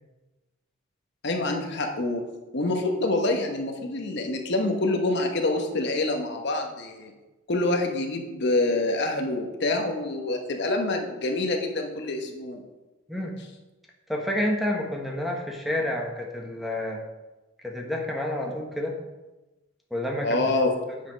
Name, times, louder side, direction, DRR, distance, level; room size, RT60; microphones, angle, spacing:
voice 1, 1.2-2.2 2.5-7.1 7.5-12.6 20.2-20.8, left 2 dB, 60° left, 3 dB, 1.0 m, -26 dB
voice 2, 14.1-17.0 17.6-18.9 19.9-20.4, left 1 dB, ahead, 0 dB, 1.1 m, -29 dB
8.4 x 5.9 x 5.1 m, 1.1 s
head